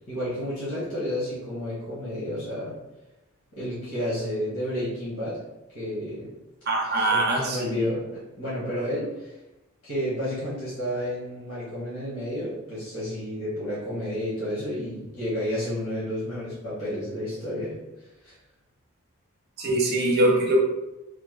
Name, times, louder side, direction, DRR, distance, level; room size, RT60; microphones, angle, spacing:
voice 1, 0.1-2.7 3.5-5.4 5.7-6.3 6.8-9.3 9.8-17.7 18.2-18.3, equal, 60° left, -10 dB, 1.3 m, -31 dB
voice 2, 6.7-7.9 19.6-20.6, right 1 dB, 45° right, -1 dB, 0.6 m, -23 dB
3.2 x 2.1 x 3.3 m, 0.99 s
head